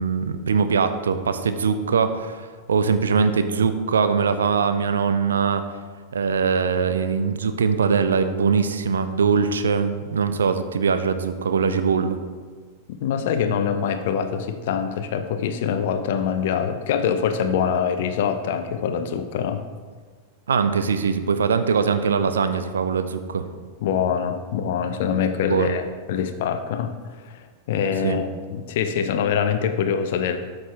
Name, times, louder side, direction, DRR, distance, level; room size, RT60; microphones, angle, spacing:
voice 1, 0.0-5.6 6.1-12.2 20.5-23.4 25.5-25.7 28.0-28.2, right 5 dB, 70° right, 10 dB, 0.6 m, -22 dB
voice 2, 12.9-19.6 23.8-26.9 27.3-27.4 27.7-30.4, left 7 dB, 55° left, 9 dB, 0.8 m, -24 dB
13.0 x 6.6 x 3.5 m, 1.5 s
figure-of-eight pair, 90°, 0 cm